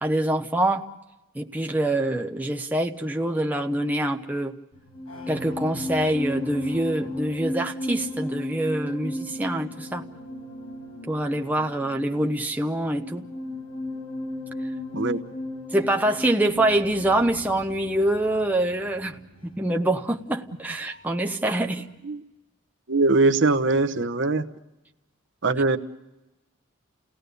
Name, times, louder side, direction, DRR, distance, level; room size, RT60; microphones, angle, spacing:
voice 1, 0.0-0.9 1.3-4.5 5.3-10.1 11.1-13.3 15.7-21.9, right 1 dB, 10° right, 3 dB, 0.9 m, -25 dB
sound 1, 4.7-21.4 21.6-21.9, left 1 dB, 85° left, 6.2 m, -36 dB
voice 2, 22.9-24.5 25.4-25.8, right 3 dB, 60° right, 7 dB, 1.0 m, -21 dB
29.5 x 17.5 x 6.8 m, 1.0 s
head